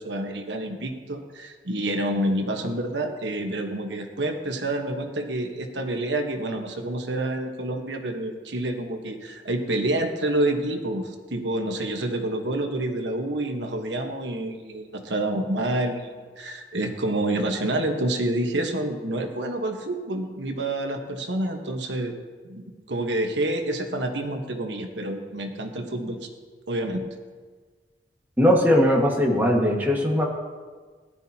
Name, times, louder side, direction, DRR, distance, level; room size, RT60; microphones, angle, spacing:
voice 1, 0.0-16.1 16.4-22.1 22.5-26.3 26.7-27.0, right 1 dB, 90° right, 4 dB, 1.3 m, -28 dB
voice 2, 28.4-30.2, equal, 10° right, -2 dB, 1.7 m, -19 dB
19.0 x 11.5 x 2.9 m, 1.5 s
head